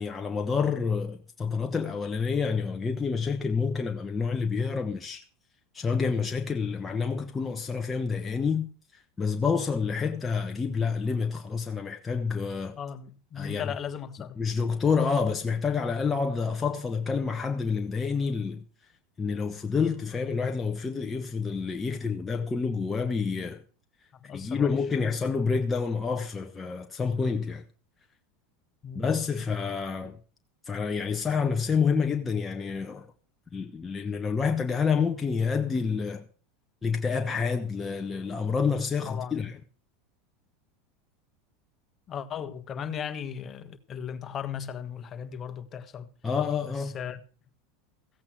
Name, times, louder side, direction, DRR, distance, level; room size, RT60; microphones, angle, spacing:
voice 1, 0.0-5.2 5.7-12.8 13.4-13.7 14.4-18.6 19.2-23.6 24.3-27.6 28.9-30.2 30.7-33.1 33.5-36.2 36.8-39.6 46.2-46.9, left 5 dB, 20° left, 1.1 m, -28 dB
voice 2, 12.8-14.4 24.1-24.7 28.8-29.1 39.0-39.5 42.1-46.1 46.6-47.2, left 8 dB, 35° left, 1.4 m, -37 dB
15.5 x 8.4 x 6.1 m
hypercardioid pair, 95°, 0 cm